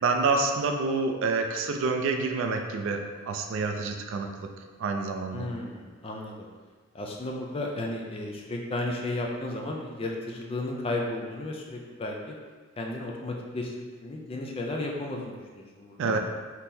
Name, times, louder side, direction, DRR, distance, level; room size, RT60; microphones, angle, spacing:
voice 1, 0.0-4.5 4.8-5.5 16.0-16.2, right 4 dB, 60° right, 4 dB, 0.3 m, -28 dB
voice 2, 5.3-6.4 6.9-12.4 12.8-16.2, left 2 dB, 25° left, 0 dB, 0.3 m, -34 dB
3.7 x 2.8 x 2.6 m, 1.5 s
head